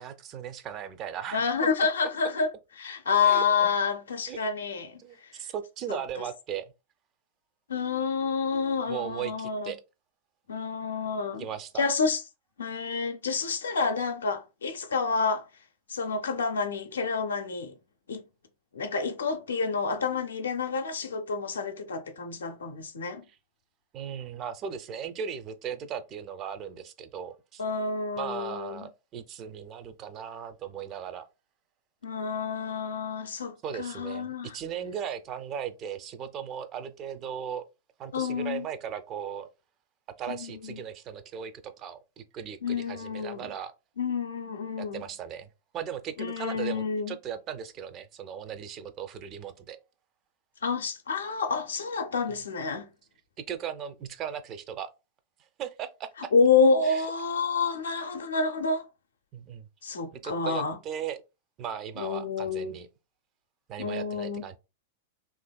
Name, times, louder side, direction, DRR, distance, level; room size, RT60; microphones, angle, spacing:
voice 1, 0.0-1.4 3.2-3.7 4.3-4.4 5.0-6.7 8.9-9.8 11.4-11.9 23.3-23.4 23.9-27.6 28.2-31.3 33.6-34.3 34.5-37.6 38.0-39.5 40.2-43.7 44.8-45.5 45.7-49.8 53.5-54.9 55.6-56.1 56.8-57.1 59.3-59.7 60.1-61.2 61.6-62.9 63.7-64.6, right 8 dB, 40° right, 0.4 m, -37 dB
voice 2, 1.3-2.5 2.8-5.0 5.9-6.2 7.7-9.7 10.5-11.5 11.8-12.2 12.6-15.4 15.9-17.7 18.1-18.2 18.7-23.2 27.6-28.9 32.0-34.5 38.1-38.7 40.3-40.8 42.6-43.5 44.0-45.0 46.2-47.2 50.6-52.9 56.3-58.9 59.8-60.8 62.0-62.8 63.8-64.4, left 5 dB, 85° left, 0.5 m, -28 dB
2.7 x 2.5 x 2.2 m
hypercardioid pair, 105°, 0 cm